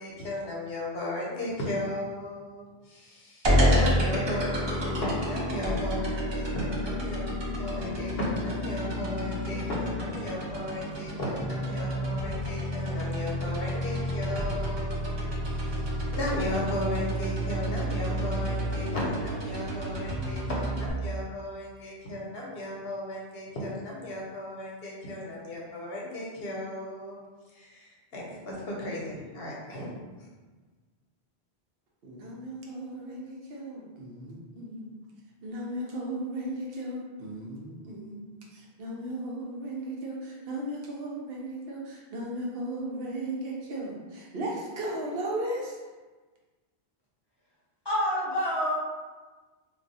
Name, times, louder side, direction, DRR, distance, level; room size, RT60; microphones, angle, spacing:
voice 1, 0.0-7.3 7.6-27.2 27.5-29.9, left 1 dB, 70° left, -4 dB, 1.0 m, -35 dB
sound 1, 3.4-20.9, equal, 35° right, 0.4 m, -30 dB
voice 2, 32.0-35.0 35.4-45.8, right 1 dB, 65° right, -2 dB, 0.8 m, -36 dB
voice 3, 47.8-48.7, equal, 25° left, -8 dB, 0.8 m, -27 dB
2.3 x 2.3 x 3.9 m, 1.3 s
omnidirectional pair, 1.1 m